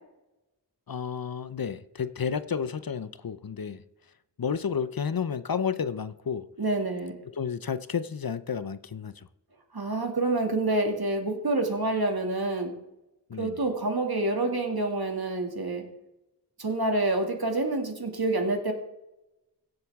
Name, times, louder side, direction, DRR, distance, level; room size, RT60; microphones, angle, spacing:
voice 1, 0.9-3.8 4.4-6.5 7.3-9.3 13.3-13.6, left 6 dB, 55° left, 0.6 m, -31 dB
voice 2, 6.6-7.2 9.7-12.7 13.4-15.8 16.6-18.7, right 2 dB, 60° right, 2.4 m, -27 dB
16.5 x 7.9 x 3.6 m
wide cardioid pair, 45°, 43 cm